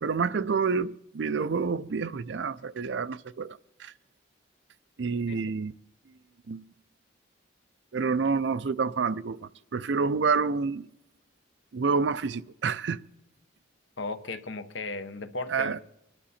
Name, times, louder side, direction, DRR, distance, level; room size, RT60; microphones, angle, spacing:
voice 1, 0.0-3.9 5.0-5.7 6.5-6.7 7.9-10.9 11.7-13.0 15.5-15.8, right 5 dB, 65° right, 0.4 m, -28 dB
voice 2, 14.0-15.8, left 3 dB, 70° left, 0.9 m, -36 dB
22.0 x 11.5 x 4.2 m
head